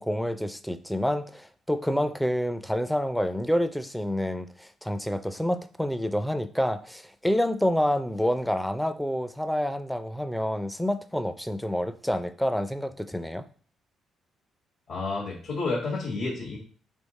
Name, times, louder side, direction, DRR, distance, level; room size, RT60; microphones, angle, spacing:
voice 1, 0.0-13.4, equal, 5° left, 0.4 m, -28 dB
voice 2, 14.9-16.6, left 3 dB, 65° left, 1.6 m, -30 dB
3.6 x 3.1 x 4.1 m
cardioid pair, 90°, 0 cm